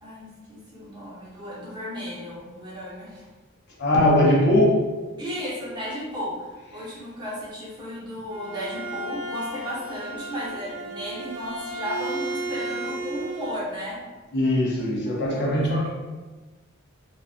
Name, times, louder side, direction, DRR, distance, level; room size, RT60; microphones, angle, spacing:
voice 1, 0.0-3.2 5.2-14.0 15.0-15.6, equal, 20° right, -8 dB, 0.8 m, -34 dB
voice 2, 3.8-4.9 14.3-15.9, left 1 dB, 55° left, -3 dB, 0.5 m, -20 dB
Bowed string instrument, 8.1-13.7, right 2 dB, 70° right, 0.4 m, -34 dB
2.4 x 2.2 x 2.4 m, 1.2 s
head